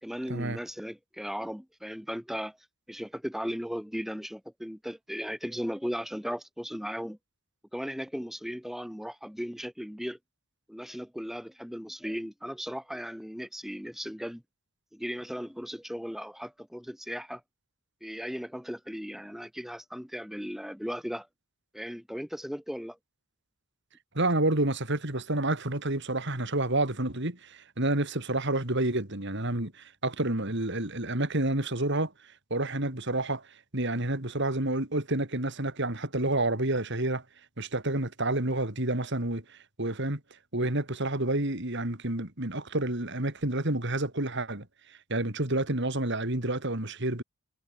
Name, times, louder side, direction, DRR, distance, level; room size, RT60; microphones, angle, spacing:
voice 1, 0.0-2.6 2.9-7.2 7.7-10.2 10.7-14.4 14.9-17.4 18.0-21.3 21.7-23.0, equal, ahead, 2.6 m, -37 dB
voice 2, 24.1-32.1 32.5-33.4 33.7-37.2 37.6-39.4 39.8-40.2 40.5-44.7 45.1-47.2, right 2 dB, 60° right, 4.0 m, -29 dB
head